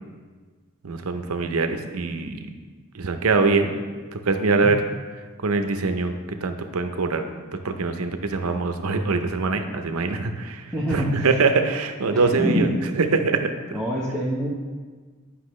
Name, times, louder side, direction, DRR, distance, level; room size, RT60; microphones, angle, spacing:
voice 1, 0.8-2.4 2.9-3.7 4.1-4.8 5.4-6.1 6.4-7.2 7.6-13.5, right 4 dB, 70° right, 7 dB, 0.6 m, -23 dB
voice 2, 10.7-11.3 12.1-12.7 13.7-14.5, equal, 5° left, -7 dB, 0.9 m, -25 dB
9.9 x 5.7 x 3.1 m, 1.4 s
head